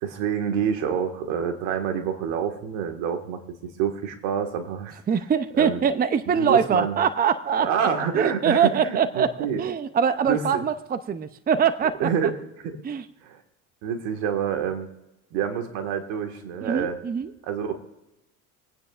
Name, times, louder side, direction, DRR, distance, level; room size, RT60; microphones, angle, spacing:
voice 1, 0.0-5.0 5.5-5.8 6.3-7.0 7.6-9.6 10.3-10.6 12.0-12.3 12.6-12.8 13.2-13.4 13.8-14.9 15.3-17.0 17.5-17.7, right 7 dB, 75° right, 5 dB, 1.8 m, -27 dB
voice 2, 5.1-7.9 8.1-12.1 12.8-13.0 16.6-17.3, right 7 dB, 20° right, 13 dB, 0.6 m, -23 dB
27.0 x 9.4 x 2.5 m, 0.94 s
supercardioid pair, 85°, 41 cm